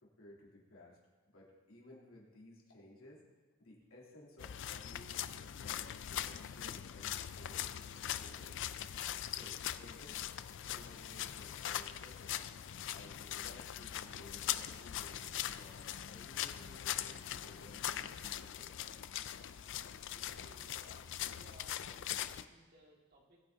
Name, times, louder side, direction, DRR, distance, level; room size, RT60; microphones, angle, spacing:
voice 1, 0.0-1.0 1.3-3.2 3.6-7.7 8.1-8.6 9.3-10.3 10.7-12.5 12.9-18.7, left 1 dB, 80° left, -4 dB, 3.2 m, -57 dB
sound 1, 4.4-22.4, left 11 dB, 65° left, 0.4 m, -41 dB
voice 2, 20.1-23.4, right 1 dB, 50° right, -2 dB, 2.3 m, -62 dB
20.5 x 9.2 x 2.8 m, 1.3 s
head